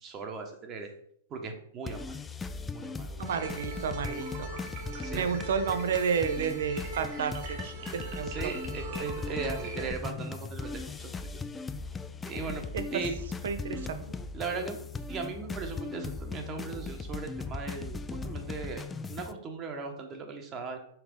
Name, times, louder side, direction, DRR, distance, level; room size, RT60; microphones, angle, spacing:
voice 1, 0.0-0.9 1.3-2.1 2.7-3.3 5.0-5.3 8.3-11.1 12.2-12.6 12.9-13.2 14.3-14.8 15.1-18.0 18.2-18.8 19.1-20.8, right 4 dB, 25° right, 4 dB, 1.2 m, -38 dB
sound 1, 1.9-19.3, left 4 dB, 10° left, 0.4 m, -38 dB
sound 2, 3.2-9.9, right 3 dB, 50° right, 1.7 m, -41 dB
voice 2, 3.2-4.5 5.1-8.3 12.7-12.8 13.4-14.0, right 6 dB, 75° right, 9 dB, 0.9 m, -31 dB
5.8 x 3.9 x 5.3 m, 0.66 s
hypercardioid pair, 145°, 0 cm